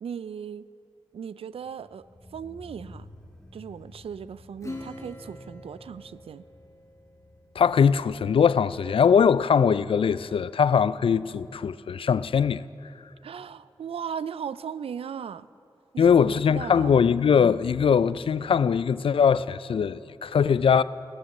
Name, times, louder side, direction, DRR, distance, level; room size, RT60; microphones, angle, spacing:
voice 1, 0.0-0.7 1.1-3.1 3.5-6.4 13.2-15.5 15.9-17.0, right 7 dB, 75° right, 0.4 m, -37 dB
sound 1, 1.5-12.6 12.8-12.9, left 1 dB, 5° left, 1.9 m, -53 dB
Acoustic guitar / Strum, 4.6-7.5, left 1 dB, 35° left, 1.5 m, -43 dB
voice 2, 7.6-12.6 16.0-20.8, left 7 dB, 65° left, 0.4 m, -21 dB
16.0 x 11.5 x 6.6 m
cardioid pair, 45°, 10 cm